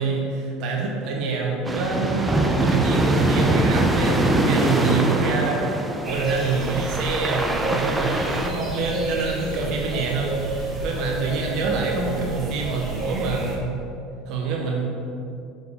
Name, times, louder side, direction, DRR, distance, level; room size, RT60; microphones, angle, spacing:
voice 1, 0.0-5.7 6.1-13.8 14.3-14.8, right 3 dB, 60° right, 0 dB, 1.1 m, -26 dB
sound 1, 1.6-8.5, right 1 dB, 15° right, 0.8 m, -23 dB
sound 2, 6.0-13.6, right 3 dB, 30° right, 1.7 m, -30 dB
7.0 x 4.8 x 4.9 m, 2.7 s
hypercardioid pair, 85°, 0 cm